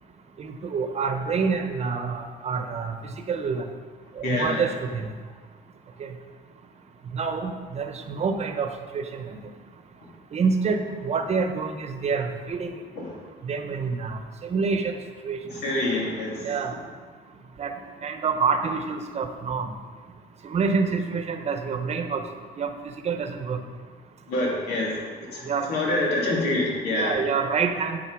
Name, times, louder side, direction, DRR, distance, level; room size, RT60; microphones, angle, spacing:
voice 1, 0.4-3.6 4.2-5.1 6.0-6.1 7.1-9.4 10.3-12.7 13.4-14.9 15.2-15.4 16.4-16.7 17.6-17.7 18.0-19.7 20.4-22.2 22.6-22.7 23.0-23.6 25.4-25.7 26.9-28.0, right 5 dB, 40° right, 6 dB, 1.0 m, -27 dB
voice 2, 4.2-4.6 13.0-13.1 15.5-16.5 24.3-27.2, left 2 dB, 75° left, -3 dB, 2.8 m, -26 dB
9.2 x 6.7 x 4.8 m, 1.5 s
cardioid pair, 110°, 17 cm